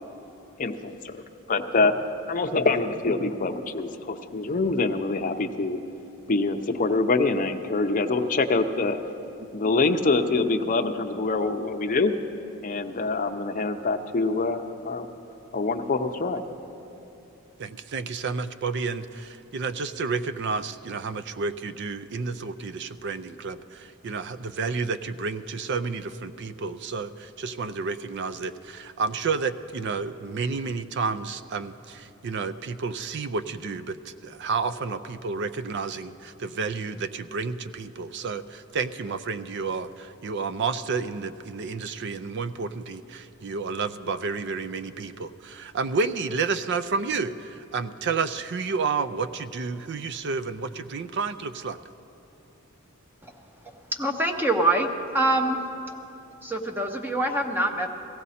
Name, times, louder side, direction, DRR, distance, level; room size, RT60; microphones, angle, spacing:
voice 1, 0.6-1.2 1.5-1.9 2.3-5.8 6.3-9.0 9.5-12.1 12.6-15.1 15.5-16.4, left 3 dB, 40° left, 5 dB, 0.6 m, -25 dB
voice 2, 17.6-51.8, right 4 dB, 55° right, 13 dB, 0.4 m, -30 dB
voice 3, 54.0-54.9 55.1-55.6 56.4-57.9, right 2 dB, 10° right, 4 dB, 0.7 m, -24 dB
17.0 x 15.0 x 4.2 m, 2.8 s
head